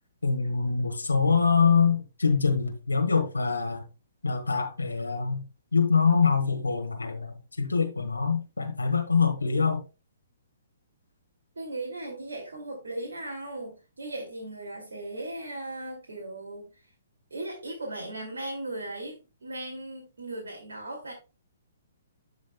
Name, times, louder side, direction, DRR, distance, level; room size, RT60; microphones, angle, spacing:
voice 1, 0.2-3.8 4.2-5.4 5.7-9.8, left 5 dB, 85° left, 1.6 m, -24 dB
voice 2, 11.6-16.9 17.3-21.1, right 2 dB, 75° right, 2.3 m, -37 dB
12.0 x 5.1 x 2.2 m
figure-of-eight pair, 125°, 0 cm